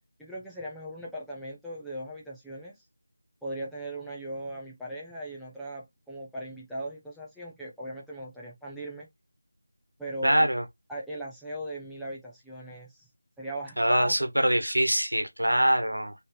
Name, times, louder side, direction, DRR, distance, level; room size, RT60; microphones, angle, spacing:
voice 1, 0.2-2.8 3.4-9.1 10.0-10.5 10.9-13.1 13.4-14.1, right 1 dB, ahead, 0.6 m, -38 dB
voice 2, 10.2-10.6 13.8-16.1, right 1 dB, 70° right, 1.2 m, -24 dB
4.2 x 3.1 x 3.1 m
figure-of-eight pair, 165°, 0 cm